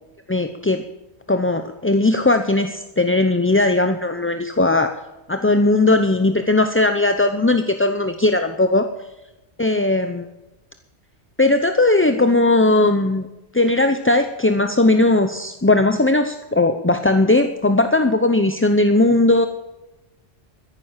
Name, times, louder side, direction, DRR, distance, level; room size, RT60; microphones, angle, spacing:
voice 1, 0.3-0.8 1.3-5.0 5.3-8.9 9.6-10.2 11.4-13.3 13.5-19.5, left 2 dB, 15° left, 7 dB, 0.6 m, -18 dB
14.5 x 11.0 x 7.3 m, 1.0 s
omnidirectional pair, 1.2 m